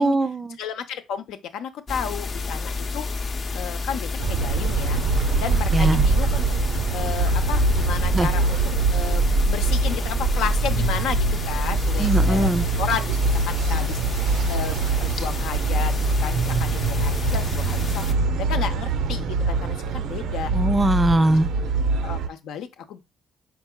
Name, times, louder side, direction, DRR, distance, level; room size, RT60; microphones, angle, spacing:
voice 1, 0.0-0.6 5.7-6.1 8.1-8.3 12.0-12.7 20.5-21.5, right 1 dB, 20° right, 0.4 m, -20 dB
voice 2, 0.6-3.1 3.5-5.0 5.4-6.6 6.9-8.6 8.9-12.5 12.8-14.0 14.5-15.9 16.2-18.0 18.4-20.5 22.0-23.0, left 8 dB, 90° left, 0.6 m, -32 dB
sound 1, 1.9-18.1, left 4 dB, 45° left, 0.6 m, -30 dB
sound 2, 4.2-22.3, right 3 dB, 80° right, 0.5 m, -23 dB
4.7 x 4.6 x 2.2 m
cardioid pair, 90°, 0 cm